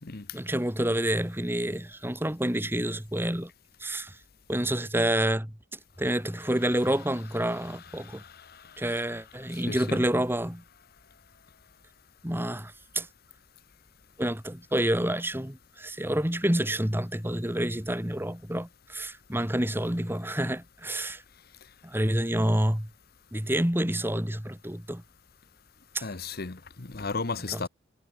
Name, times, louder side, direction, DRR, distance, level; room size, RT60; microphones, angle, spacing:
voice 1, 0.3-3.5 3.8-4.2 4.5-8.2 8.8-10.6 12.2-13.1 14.2-21.2 21.8-22.9 23.3-25.0 25.9-26.0 27.5-27.6, right 1 dB, 10° right, 2.7 m, -28 dB
voice 2, 7.5-9.1 9.5-10.0 26.0-27.7, left 4 dB, 50° left, 1.1 m, -37 dB
head